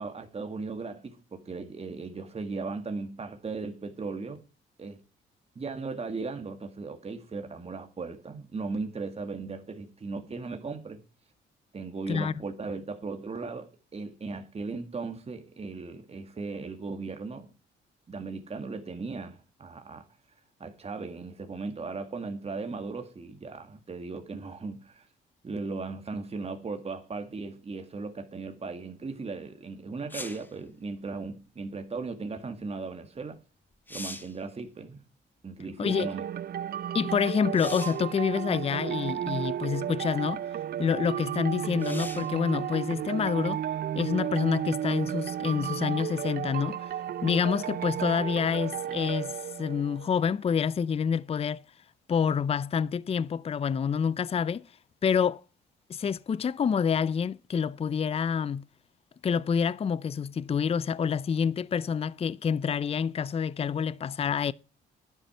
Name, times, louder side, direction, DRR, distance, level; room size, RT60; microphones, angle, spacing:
voice 1, 0.0-4.5 4.8-5.0 5.6-11.0 11.7-17.5 18.1-20.1 20.6-25.1 25.4-33.4 33.9-35.0 35.4-36.3, right 4 dB, 30° right, 2.1 m, -37 dB
sound 1, 30.1-30.5 33.2-33.3 33.7-34.4 37.5-38.1 39.1-39.2 41.8-42.4 46.0-46.1, left 1 dB, 10° left, 1.5 m, -41 dB
sound 2, 35.9-50.4, right 10 dB, 50° right, 0.5 m, -33 dB
voice 2, 36.9-40.4 40.8-43.6 43.9-46.9 47.2-51.6 52.1-54.7 55.0-55.4 55.9-58.6 59.2-64.5, left 6 dB, 30° left, 0.5 m, -27 dB
11.5 x 10.5 x 4.5 m
cardioid pair, 90°, 20 cm